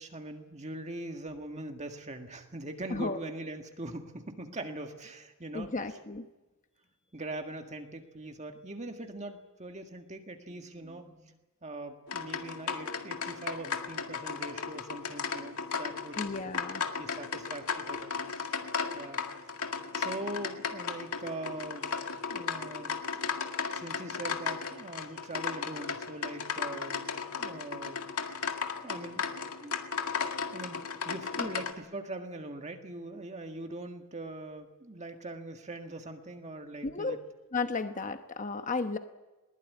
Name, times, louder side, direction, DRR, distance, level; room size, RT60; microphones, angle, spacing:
voice 1, 0.0-5.7 7.1-16.2 16.9-18.6 18.9-19.2 19.9-23.0 23.7-28.0 28.8-29.2 29.6-29.8 30.5-37.2, right 2 dB, 30° right, 4 dB, 1.8 m, -42 dB
voice 2, 5.5-6.3 16.2-16.9 31.4-31.5 36.8-37.2 37.5-39.0, left 3 dB, 35° left, 8 dB, 1.0 m, -33 dB
sound 1, 12.1-31.7, left 5 dB, 80° left, 2.0 m, -35 dB
21.0 x 20.5 x 9.6 m, 1.1 s
head